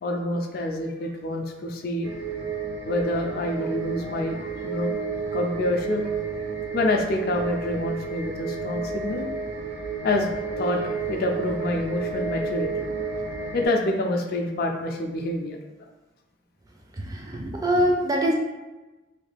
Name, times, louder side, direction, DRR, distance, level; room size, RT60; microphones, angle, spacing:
voice 1, 0.0-2.1 2.8-5.0 5.3-6.0 6.7-9.3 10.0-12.9 13.5-15.6, left 1 dB, 55° left, 3 dB, 0.4 m, -27 dB
sound 1, 2.0-13.7, right 4 dB, 80° right, 0.5 m, -31 dB
voice 2, 17.0-18.3, equal, 20° right, 1 dB, 0.3 m, -23 dB
3.2 x 2.4 x 3.3 m, 1.1 s
head